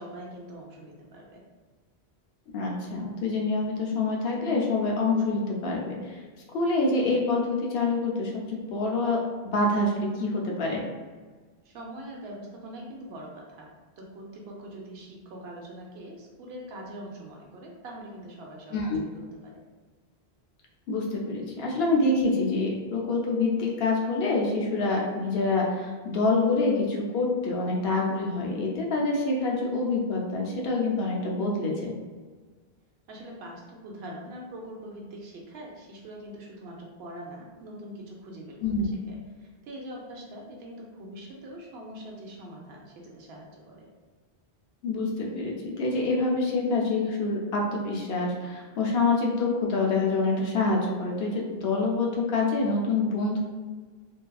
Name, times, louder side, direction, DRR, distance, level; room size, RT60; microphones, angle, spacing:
voice 1, 0.0-1.4 11.6-13.7 14.0-19.6 33.1-43.9, right 1 dB, 75° right, -1 dB, 0.8 m, -43 dB
voice 2, 2.5-6.2 6.5-9.2 9.5-10.8 18.7-19.0 20.9-31.9 38.6-38.9 44.8-53.4, left 3 dB, 70° left, -2 dB, 0.8 m, -26 dB
2.6 x 2.4 x 2.2 m, 1.4 s
omnidirectional pair, 1.1 m